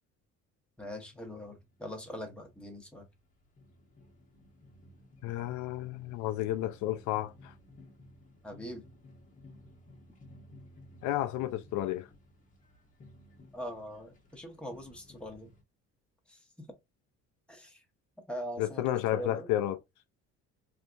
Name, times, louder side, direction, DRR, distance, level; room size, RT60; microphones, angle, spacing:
voice 1, 0.8-3.1 8.4-8.8 13.5-15.5 16.3-16.7 17.5-17.8 18.3-19.5, equal, 5° left, 1.0 m, -42 dB
sound 1, 1.1-15.6, left 1 dB, 25° left, 1.0 m, -57 dB
voice 2, 5.2-7.5 11.0-12.1 18.6-19.8, left 13 dB, 80° left, 0.5 m, -32 dB
3.3 x 2.7 x 2.5 m
cardioid pair, 115°, 29 cm